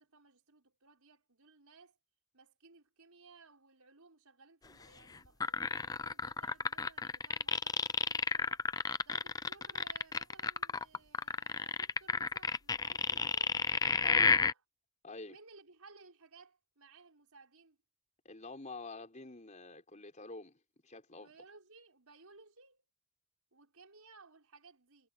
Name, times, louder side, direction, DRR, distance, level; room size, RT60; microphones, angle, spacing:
voice 1, 0.0-2.0 2.3-8.6 9.0-13.6 14.4-14.6 15.3-17.8 21.1-22.8 23.5-25.1, right 4 dB, 85° right, 5.3 m, -60 dB
sound 1, 5.4-14.5, left 5 dB, 15° left, 0.4 m, -31 dB
voice 2, 14.0-14.4 15.0-15.4 18.2-21.3, left 3 dB, 35° left, 4.9 m, -47 dB
head